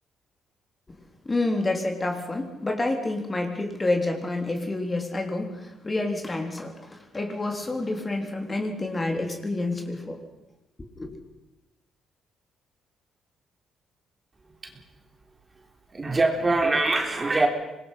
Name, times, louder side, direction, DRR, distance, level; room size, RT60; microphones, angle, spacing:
voice 1, 1.3-10.2 11.0-11.1, left 2 dB, 25° left, 4 dB, 3.6 m, -28 dB
voice 2, 15.9-17.5, right 2 dB, 25° right, 3 dB, 3.8 m, -23 dB
26.0 x 21.0 x 5.8 m, 0.93 s
cardioid pair, 90°, 0 cm